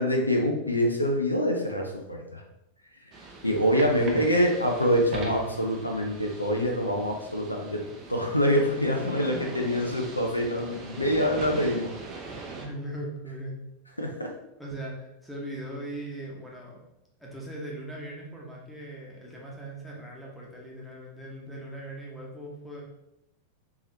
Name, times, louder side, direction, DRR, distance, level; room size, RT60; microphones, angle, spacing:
voice 1, 0.0-2.4 3.4-7.8 8.1-12.0 14.0-14.3, equal, 85° left, 1 dB, 0.5 m, -25 dB
sound 1, 3.1-12.7, right 3 dB, 30° right, 0.6 m, -42 dB
voice 2, 4.0-4.4 9.0-9.5 9.9-10.0 12.6-13.6 13.9-14.0 14.6-16.8 17.2-22.8, right 1 dB, ahead, -4 dB, 1.0 m, -39 dB
3.7 x 2.9 x 2.8 m, 0.86 s
figure-of-eight pair, 90°, 0 cm